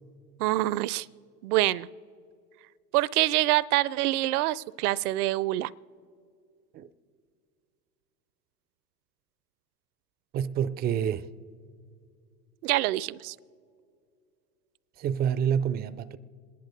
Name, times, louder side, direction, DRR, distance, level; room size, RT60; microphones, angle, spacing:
voice 1, 0.4-1.1 1.4-1.9 2.9-5.7 12.6-13.4, right 17 dB, 70° right, 0.6 m, -25 dB
voice 2, 10.3-11.3 15.0-16.2, right 8 dB, 25° right, 0.3 m, -28 dB
27.5 x 10.5 x 3.9 m
hypercardioid pair, 85°, 47 cm